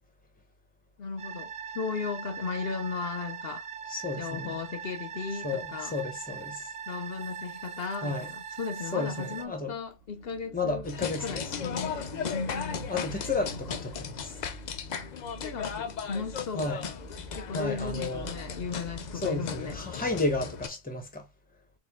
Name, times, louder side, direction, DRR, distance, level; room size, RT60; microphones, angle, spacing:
voice 1, 1.0-3.7 4.2-6.0 6.9-10.8 11.2-12.9 13.7-13.8 15.4-16.8 17.4-19.8, left 5 dB, 70° left, 0.9 m, -36 dB
sound 1, 1.2-9.5, right 7 dB, 50° right, 0.4 m, -41 dB
voice 2, 3.9-4.6 5.4-6.7 8.0-8.3 8.9-9.7 10.5-11.8 12.9-14.4 16.5-16.9 17.5-18.3 19.2-21.3, left 3 dB, 10° left, 1.0 m, -32 dB
sound 2, 9.9-20.5, right 3 dB, 70° right, 1.1 m, -46 dB
sound 3, 10.8-20.7, left 7 dB, 50° left, 0.6 m, -37 dB
4.5 x 2.5 x 3.6 m
omnidirectional pair, 1.1 m